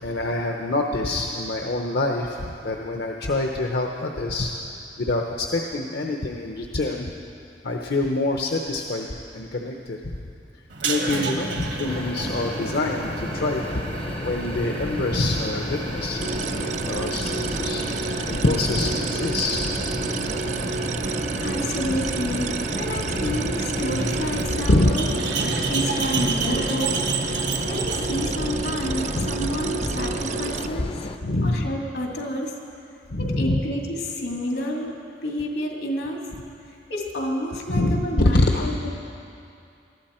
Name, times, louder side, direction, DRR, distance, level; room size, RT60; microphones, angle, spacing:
voice 1, 0.0-4.5 5.0-7.1 7.6-10.0 10.8-13.7 13.9-19.8 23.2-23.4 24.7-24.9 26.4-26.7 29.1-29.5 31.2-31.7 33.1-33.6 37.7-38.7, left 2 dB, 65° left, 2 dB, 0.8 m, -25 dB
sound 1, 10.7-30.1, right 3 dB, 75° right, 1.5 m, -31 dB
sound 2, 11.8-31.2, left 2 dB, 30° left, 0.5 m, -33 dB
sound 3, 16.2-30.7, right 5 dB, 40° right, 0.4 m, -31 dB
voice 2, 21.4-25.1 25.7-26.9 27.7-31.0 31.4-32.5 33.2-34.9 35.2-36.3 36.6-38.9, equal, 80° left, 0 dB, 2.4 m, -29 dB
20.0 x 13.5 x 4.4 m, 2.6 s
head